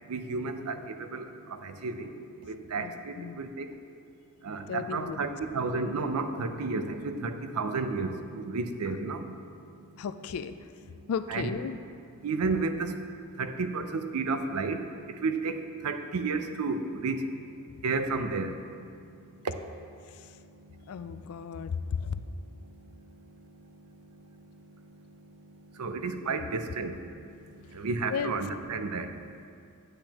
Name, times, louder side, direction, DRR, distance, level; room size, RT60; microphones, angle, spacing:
voice 1, 0.1-2.1 2.4-3.7 4.4-9.3 11.3-11.5 12.2-13.0 13.4-17.3 17.8-18.6 19.4-19.6 25.5-27.0 27.3-29.5, right 4 dB, 90° right, 8 dB, 0.5 m, -32 dB
voice 2, 2.7-3.4 4.7-5.3 10.0-10.6 11.1-11.8 17.7-17.8 20.9-22.2 28.1-28.3, left 6 dB, 75° left, 12 dB, 0.3 m, -34 dB
8.8 x 7.9 x 2.9 m, 2.4 s
head